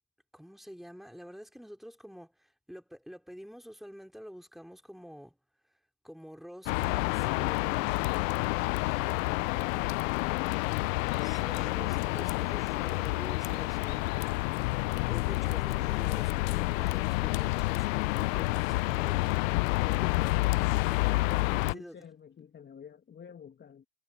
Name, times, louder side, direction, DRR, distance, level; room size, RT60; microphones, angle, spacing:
voice 1, 0.3-5.4 6.0-8.1 11.2-14.5 15.1-19.4 19.9-20.2 21.6-22.0, equal, ahead, 4.8 m, -48 dB
sound 1, 6.7-21.7, left 23 dB, 60° left, 0.9 m, -29 dB
voice 2, 21.3-23.8, left 7 dB, 25° left, 2.4 m, -48 dB
hypercardioid pair, 95°, 44 cm